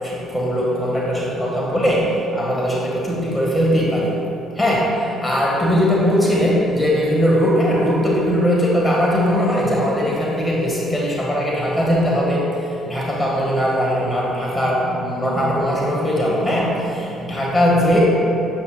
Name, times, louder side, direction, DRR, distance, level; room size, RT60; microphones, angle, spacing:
voice 1, 0.0-4.1 4.6-18.0, equal, 15° left, -4 dB, 1.5 m, -20 dB
7.2 x 6.6 x 2.2 m, 2.8 s
hypercardioid pair, 60°, 0 cm